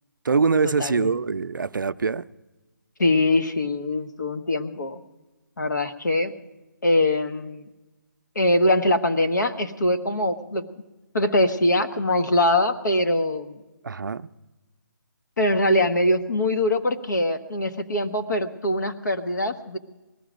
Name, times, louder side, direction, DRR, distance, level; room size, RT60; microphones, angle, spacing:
voice 1, 0.2-2.2 13.8-14.3, right 5 dB, 75° right, 0.5 m, -23 dB
voice 2, 0.8-1.1 3.0-5.0 5.6-6.3 6.8-7.6 8.3-10.6 11.1-13.6 15.4-19.8, left 1 dB, 60° left, 1.2 m, -22 dB
19.5 x 14.0 x 5.1 m
hypercardioid pair, 175°, 11 cm